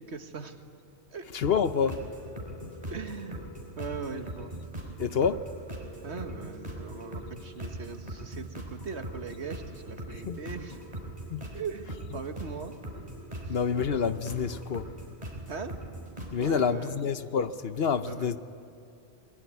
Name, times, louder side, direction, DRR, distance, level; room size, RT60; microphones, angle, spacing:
voice 1, 0.1-0.6 1.1-1.3 2.9-3.4 3.8-4.5 6.0-10.8 11.5-12.8 13.5-13.6 15.5-15.8 16.4-17.0 18.0-18.3, right 5 dB, 80° right, 7 dB, 1.8 m, -39 dB
voice 2, 1.3-2.0 5.0-5.5 10.3-10.4 11.3-11.4 13.5-14.9 16.3-18.4, left 6 dB, 65° left, 12 dB, 1.1 m, -27 dB
sound 1, 1.4-16.6, right 1 dB, 35° right, 4.7 m, -41 dB
27.5 x 22.5 x 9.6 m, 2.5 s
omnidirectional pair, 1.1 m